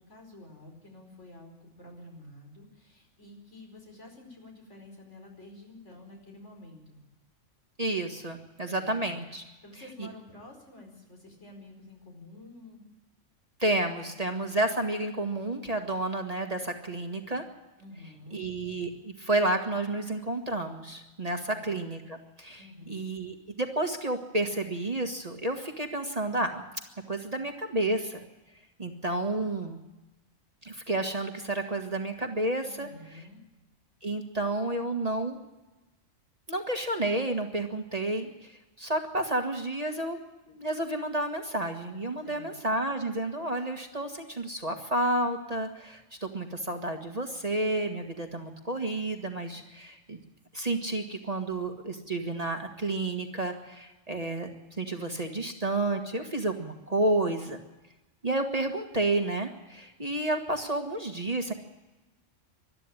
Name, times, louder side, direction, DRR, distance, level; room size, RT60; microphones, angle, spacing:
voice 1, 0.0-7.0 8.7-9.1 9.6-12.8 17.8-18.4 21.3-21.7 22.6-23.1 32.6-33.4 42.2-42.5, left 2 dB, 65° left, 1 dB, 5.1 m, -49 dB
voice 2, 7.8-9.4 13.6-17.4 18.3-26.6 27.1-28.2 28.8-29.8 30.6-32.9 34.0-35.4 36.5-38.5 38.8-40.2 40.5-50.2 50.5-54.5 54.8-57.6 58.2-61.5, right 2 dB, 30° right, 4 dB, 1.6 m, -30 dB
20.5 x 13.0 x 9.8 m, 1.1 s
omnidirectional pair, 1.3 m